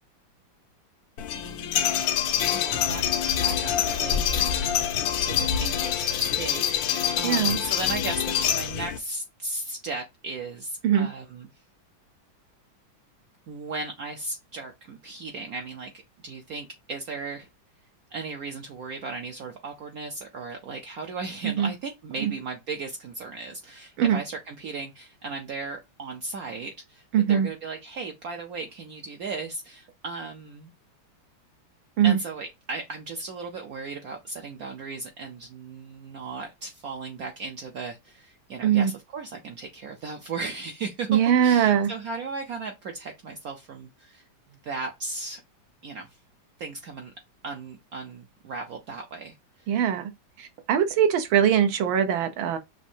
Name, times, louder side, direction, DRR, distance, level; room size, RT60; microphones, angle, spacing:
sound 1, 1.2-9.0, left 9 dB, 80° left, 1.4 m, -26 dB
voice 1, 1.3-2.0 2.4-3.0 3.4-4.3 5.3-11.5 13.5-15.9 16.2-17.5 18.1-30.7 32.0-45.4 45.8-46.2 46.6-47.1 47.4-49.7, right 3 dB, 65° right, 0.9 m, -36 dB
voice 2, 7.2-7.6 10.8-11.1 21.4-21.7 22.2-22.3 24.0-24.2 27.1-27.5 32.0-32.2 38.6-38.9 41.1-41.9 49.7-50.1 50.4-52.6, right 9 dB, 80° right, 1.5 m, -21 dB
6.2 x 2.6 x 2.7 m
omnidirectional pair, 2.2 m